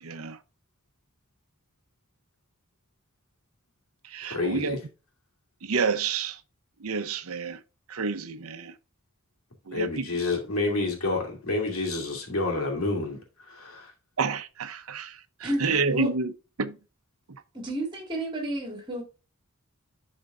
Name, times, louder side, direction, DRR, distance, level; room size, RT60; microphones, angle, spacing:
voice 1, 0.0-0.4 4.0-4.8 5.6-6.4 6.8-7.6 7.9-8.7 9.7-10.1 14.2-16.3 16.6-16.8, right 4 dB, 80° right, 0.7 m, -29 dB
voice 2, 4.2-4.8 9.7-13.9, left 3 dB, 80° left, 2.5 m, -29 dB
voice 3, 15.4-16.1 17.5-19.0, right 1 dB, 20° right, 2.1 m, -31 dB
11.5 x 4.3 x 2.5 m
head